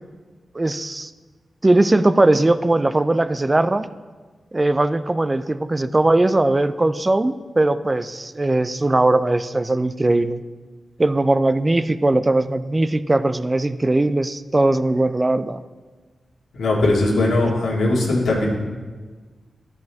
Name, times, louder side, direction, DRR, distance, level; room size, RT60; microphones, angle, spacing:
voice 1, 0.5-1.1 1.6-3.9 4.5-10.4 11.0-15.6, right 2 dB, 20° right, 12 dB, 0.3 m, -19 dB
voice 2, 16.6-18.5, left 2 dB, 90° left, -3 dB, 1.9 m, -19 dB
13.5 x 5.2 x 3.5 m, 1.4 s
wide cardioid pair, 120°, 0 cm